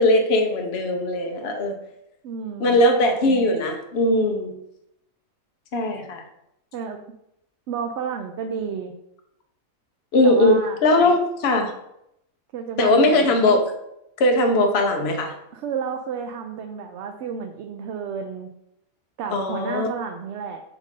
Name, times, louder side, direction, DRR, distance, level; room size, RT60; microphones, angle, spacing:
voice 1, 0.0-1.8 2.6-4.5 5.7-6.2 10.1-11.7 12.8-13.7 14.2-15.3 19.3-19.9, left 1 dB, 55° left, 4 dB, 1.0 m, -19 dB
voice 2, 2.2-2.8 4.2-4.3 6.7-7.0 7.7-8.9 10.2-10.8 12.5-13.4 15.5-18.5 19.2-20.6, right 6 dB, 65° right, 5 dB, 0.8 m, -31 dB
7.2 x 2.6 x 5.2 m, 0.81 s
omnidirectional pair, 1.4 m